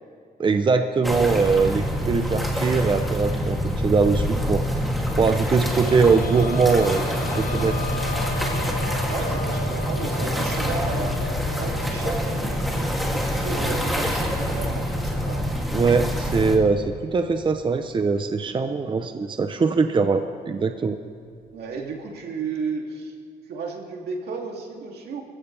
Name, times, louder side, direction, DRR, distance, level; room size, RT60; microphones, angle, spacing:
voice 1, 0.4-4.6 5.2-7.1 7.4-7.8 15.7-21.0, right 4 dB, 30° right, 7 dB, 0.7 m, -21 dB
sound 1, 1.0-16.6, equal, ahead, 2.7 m, -26 dB
sound 2, 5.1-16.5 16.9-17.0 18.5-18.6, left 1 dB, 60° left, 2.2 m, -38 dB
voice 2, 9.1-11.1 11.6-15.5 21.5-23.1 23.5-25.3, right 4 dB, 80° right, 0 dB, 2.8 m, -33 dB
27.0 x 15.5 x 3.4 m, 2.4 s
cardioid pair, 115°, 16 cm